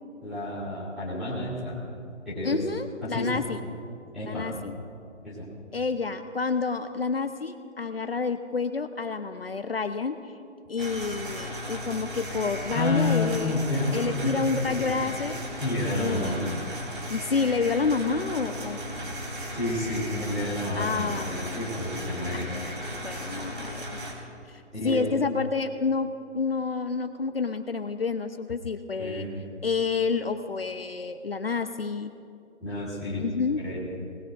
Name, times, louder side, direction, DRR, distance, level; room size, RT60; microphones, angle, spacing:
voice 1, 0.2-1.8 2.2-2.5 3.0-3.3 4.1-4.5 5.2-5.5 12.7-14.9 15.6-16.4 19.5-22.5 24.7-25.0 29.0-29.3 32.6-33.2 33.6-33.8, left 2 dB, ahead, -15 dB, 1.5 m, -30 dB
voice 2, 2.4-3.7 4.2-4.7 5.7-10.3 10.7-13.6 13.9-15.4 16.0-16.5 17.1-19.1 20.8-21.5 22.3-23.8 24.5-26.1 26.3-29.3 29.6-32.1 33.2-33.6, left 4 dB, 55° left, 8 dB, 0.7 m, -29 dB
sound 1, 10.8-24.1, equal, 45° right, 3.4 m, -36 dB
25.0 x 19.5 x 2.6 m, 2.5 s
hypercardioid pair, 180°, 36 cm